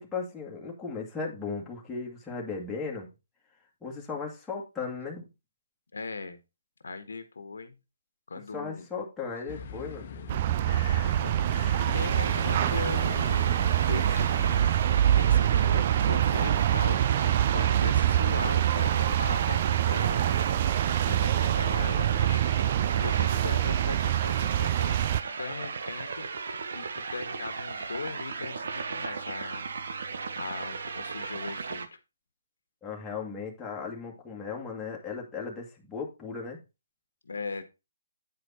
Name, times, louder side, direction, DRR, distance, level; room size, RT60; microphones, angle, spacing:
voice 1, 0.0-3.1 3.8-5.3 8.5-10.4 32.8-36.6, left 5 dB, 5° left, -3 dB, 2.1 m, -36 dB
voice 2, 5.9-6.4 6.8-7.8 8.3-8.9 10.9-11.4 11.7-13.4 13.8-14.6 15.0-20.5 21.0-25.0 25.3-26.3 26.7-26.9 27.1-29.6 30.4-31.8 37.2-37.6, left 4 dB, 80° left, 9 dB, 1.4 m, -39 dB
sound 1, 9.5-14.6, left 6 dB, 40° left, 1.2 m, -41 dB
sound 2, 10.3-25.2, right 11 dB, 35° right, 0.3 m, -25 dB
sound 3, 12.0-31.9, right 5 dB, 65° right, 1.1 m, -36 dB
8.9 x 4.9 x 4.2 m, 0.26 s
hypercardioid pair, 155°, 0 cm